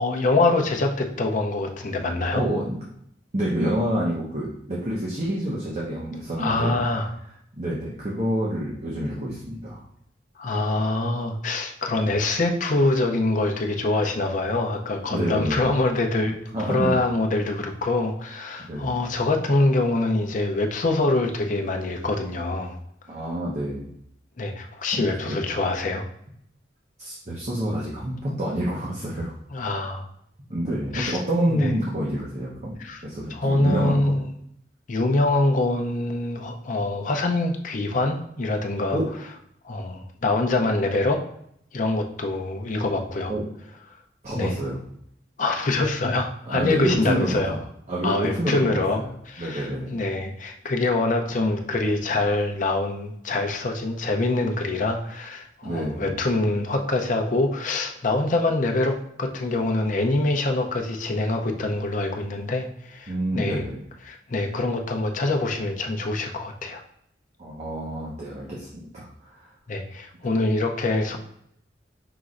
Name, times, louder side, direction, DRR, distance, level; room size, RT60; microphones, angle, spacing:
voice 1, 0.0-2.4 6.4-7.1 10.4-16.4 16.7-22.8 24.4-26.1 29.5-30.0 30.9-31.2 31.5-31.7 32.8-33.0 33.3-34.2 34.9-39.0 39.6-41.2 41.7-43.3 44.4-44.6 45.4-47.6 48.0-63.6 64.0-66.8 69.7-71.2, left 2 dB, 45° left, 4 dB, 0.6 m, -25 dB
voice 2, 2.3-2.8 3.3-6.8 7.5-9.8 11.9-12.0 15.1-15.7 16.5-17.0 18.7-19.0 23.1-23.9 24.9-25.4 27.0-29.3 30.5-32.7 33.0-34.2 38.9-39.0 43.3-43.4 44.2-44.8 46.5-47.6 47.9-49.1 49.4-50.0 55.6-56.2 63.1-63.8 67.4-69.5, right 1 dB, 40° right, -5 dB, 0.8 m, -28 dB
5.8 x 3.1 x 2.5 m, 0.71 s
head